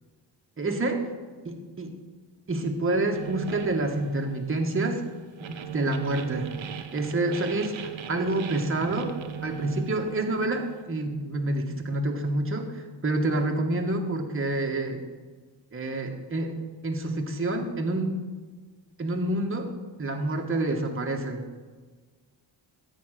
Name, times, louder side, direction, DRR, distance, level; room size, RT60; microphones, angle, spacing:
voice 1, 0.6-1.0 1.4-1.9 2.5-5.0 5.4-6.5 6.9-9.2 9.4-15.0 15.7-18.2 19.0-19.7 20.0-21.4, right 2 dB, 30° right, 3 dB, 1.4 m, -28 dB
sound 1, 3.1-10.8, right 9 dB, 85° right, 1.1 m, -39 dB
15.0 x 5.2 x 9.1 m, 1.4 s
wide cardioid pair, 160°, 45 cm